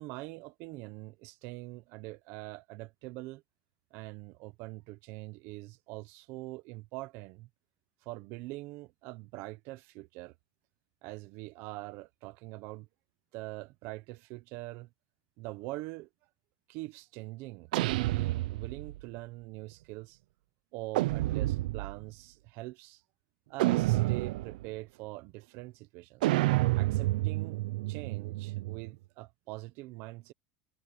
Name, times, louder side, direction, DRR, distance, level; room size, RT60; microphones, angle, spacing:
voice 1, 0.0-3.4 3.9-7.5 8.0-10.3 11.0-12.9 13.3-14.9 15.4-16.1 16.7-20.2 20.7-23.0 23.5-26.3 26.7-30.3, right 20 dB, 60° right, 1.1 m, -43 dB
sound 1, 17.7-19.0 20.9-22.0 23.6-24.7 26.2-28.9, right 18 dB, 85° right, 0.8 m, -29 dB
supercardioid pair, 125°, 4 cm